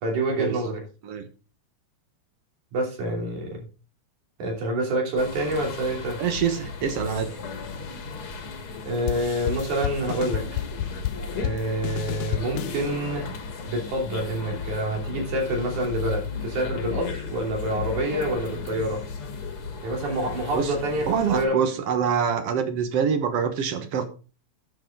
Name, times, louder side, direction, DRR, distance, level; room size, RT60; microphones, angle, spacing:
voice 1, 0.0-0.8 2.7-3.5 4.4-6.2 8.9-10.4 11.4-13.2 13.7-19.0 19.8-21.0 21.3-21.6, right 1 dB, 80° right, 0 dB, 4.4 m, -27 dB
sound 1, 5.2-21.4, left 5 dB, 50° left, 2.2 m, -35 dB
voice 2, 6.2-7.3 20.5-20.7 21.1-24.1, right 7 dB, 60° right, 8 dB, 2.0 m, -25 dB
sound 2, 9.1-12.9, left 11 dB, 80° left, 1.6 m, -31 dB
10.5 x 7.5 x 3.8 m, 0.34 s
omnidirectional pair, 3.4 m